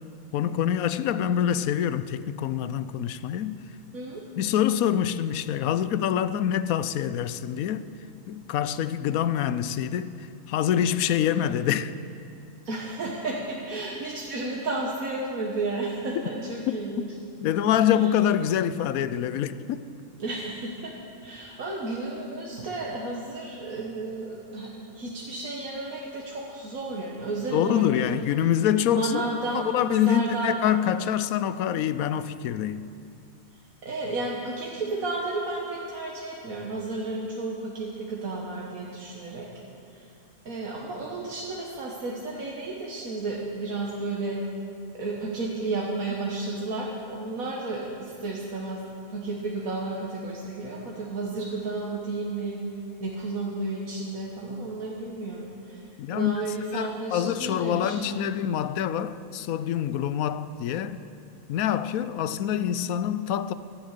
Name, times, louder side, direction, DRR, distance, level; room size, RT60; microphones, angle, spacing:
voice 1, 0.3-3.6 4.4-7.8 8.3-11.9 16.7-16.8 17.4-19.8 27.5-29.2 29.7-32.9 56.0-61.0 61.5-63.5, left 10 dB, 85° left, 1.1 m, -26 dB
voice 2, 3.9-4.2 12.7-17.1 17.9-18.1 20.2-20.9 21.2-28.1 28.9-30.6 33.8-39.5 39.9-40.1 40.5-44.4 44.9-48.8 49.1-52.6 53.0-58.3, right 2 dB, 80° right, 1.9 m, -32 dB
17.5 x 12.0 x 6.6 m
omnidirectional pair, 1.4 m